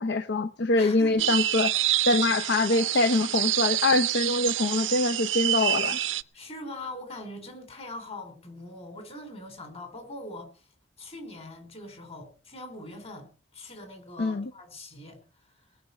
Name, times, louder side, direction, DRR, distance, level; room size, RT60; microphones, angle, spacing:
voice 1, 0.0-6.0 14.2-14.5, left 2 dB, 65° left, 0.6 m, -24 dB
voice 2, 0.8-1.3 6.3-10.5 11.0-15.2 15.6-15.7, left 1 dB, 35° left, 4.3 m, -42 dB
sound 1, 1.2-6.2, right 14 dB, 90° right, 0.6 m, -27 dB
19.5 x 6.4 x 8.4 m
head